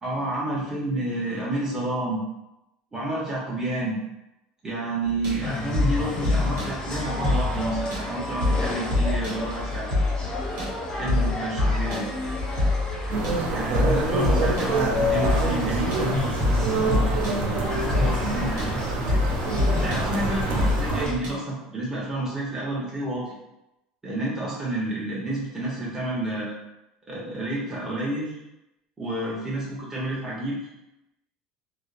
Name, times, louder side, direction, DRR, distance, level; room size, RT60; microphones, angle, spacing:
voice 1, 0.0-2.2 2.9-4.0 4.6-9.9 10.9-12.1 13.5-18.7 19.6-23.4 24.0-26.6 27.1-28.4 29.0-30.7, right 1 dB, 15° right, -6 dB, 0.8 m, -30 dB
sound 1, 5.0-21.3, left 2 dB, 70° right, 1.0 m, -26 dB
sound 2, 5.4-21.2, left 2 dB, 25° left, 0.6 m, -32 dB
sound 3, 13.1-21.1, right 3 dB, 50° right, 0.5 m, -27 dB
2.7 x 2.0 x 2.5 m, 0.90 s
supercardioid pair, 90°, 3 cm